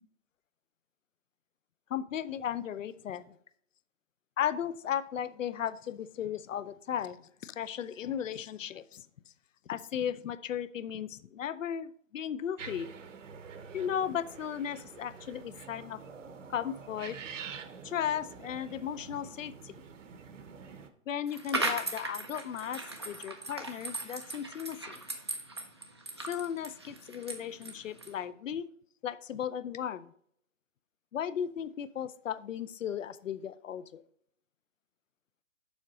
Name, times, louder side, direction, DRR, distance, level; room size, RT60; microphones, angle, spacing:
voice 1, 1.9-3.3 4.4-9.0 9.7-12.9 13.7-16.0 16.5-17.2 17.8-19.7 21.1-24.8 26.2-28.7 29.0-30.1 31.1-34.0, left 9 dB, 70° left, 15 dB, 0.6 m, -35 dB
sound 1, 12.6-20.9, right 6 dB, 65° right, 1.0 m, -47 dB
sound 2, 21.3-28.2, right 2 dB, 20° right, 0.4 m, -38 dB
7.2 x 5.0 x 4.1 m, 0.67 s
hypercardioid pair, 155°, 40 cm